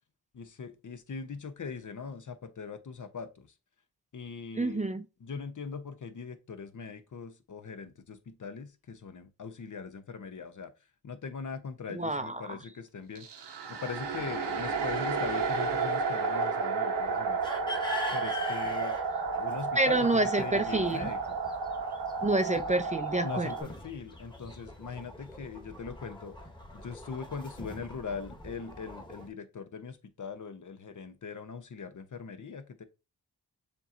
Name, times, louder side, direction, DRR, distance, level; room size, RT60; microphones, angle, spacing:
voice 1, 0.3-3.5 4.1-4.8 5.2-10.7 11.0-13.3 13.7-17.4 18.1-19.0 19.4-21.4 23.2-26.4 26.7-32.8, left 5 dB, 45° left, 0.8 m, -41 dB
voice 2, 4.6-5.0 11.9-12.6 19.8-21.1 22.2-23.5, right 2 dB, 15° right, 0.6 m, -28 dB
sound 1, 13.2-23.6, right 4 dB, 75° right, 1.1 m, -32 dB
sound 2, 16.9-29.3, left 1 dB, 10° left, 1.3 m, -43 dB
6.8 x 3.0 x 2.5 m
supercardioid pair, 45°, 42 cm